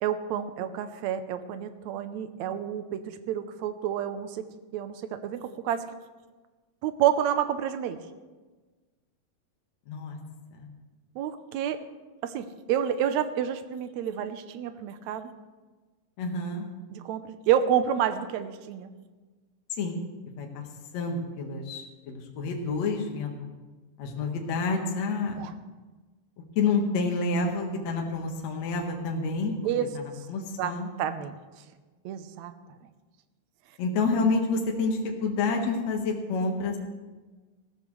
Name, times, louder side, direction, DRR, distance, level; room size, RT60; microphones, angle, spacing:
voice 1, 0.0-4.4 4.7-5.9 6.8-8.0 11.2-11.8 12.2-15.3 16.9-18.9 25.4-25.5 29.6-29.9 30.6-30.7 31.0-31.4 32.1-32.8, right 10 dB, 75° right, 9 dB, 1.8 m, -29 dB
voice 2, 9.9-10.2 10.5-10.7 16.2-16.7 19.8-20.0 20.4-20.6 20.9-23.3 24.0-25.4 26.6-29.5 30.3-30.9 33.8-36.8, left 3 dB, 55° left, 1 dB, 2.5 m, -28 dB
19.5 x 14.5 x 3.3 m, 1.3 s
omnidirectional pair, 4.1 m